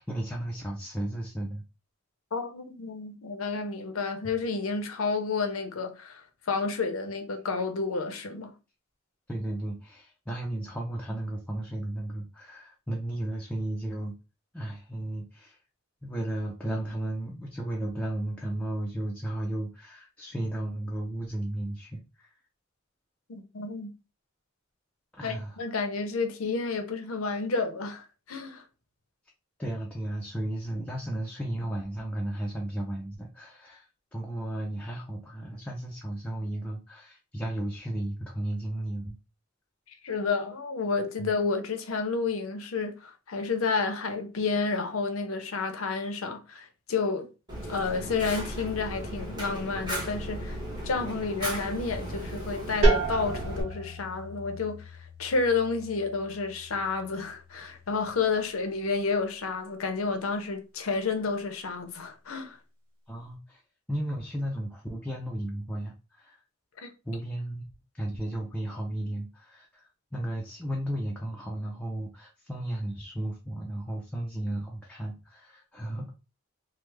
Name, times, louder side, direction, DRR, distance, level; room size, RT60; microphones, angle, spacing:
voice 1, 0.0-1.6 9.3-14.2 14.5-15.6 16.0-22.3 25.1-25.6 29.6-33.9 34.1-39.2 41.2-41.3 63.1-63.6 63.9-66.4 67.0-67.6 67.9-76.1, right 1 dB, 5° left, 0.4 m, -34 dB
voice 2, 2.3-8.5 23.3-24.0 25.2-28.6 40.0-47.3 47.7-62.6 66.8-66.9, left 4 dB, 90° left, 0.6 m, -30 dB
Fire, 47.5-53.6, equal, 20° right, 1.1 m, -36 dB
sound 1, 52.8-58.4, right 2 dB, 70° right, 1.3 m, -31 dB
3.2 x 2.0 x 3.2 m
head